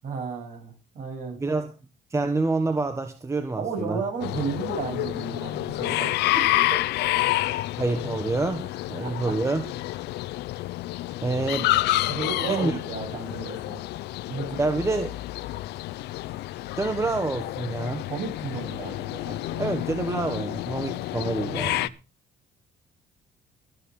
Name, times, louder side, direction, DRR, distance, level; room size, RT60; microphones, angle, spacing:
voice 1, 0.0-1.4 3.6-6.8 9.0-9.3 12.1-13.8 14.3-14.6 18.1-19.7, right 5 dB, 50° right, 2 dB, 7.5 m, -33 dB
voice 2, 1.4-1.7 2.1-4.0 7.8-9.6 11.2-11.7 12.5-12.7 14.6-15.1 16.8-18.0 19.6-21.9, right 3 dB, 15° right, 8 dB, 1.3 m, -27 dB
sound 1, 4.2-21.9, left 17 dB, 80° left, 0.6 m, -29 dB
21.5 x 8.7 x 3.8 m, 0.29 s
cardioid pair, 110°, 17 cm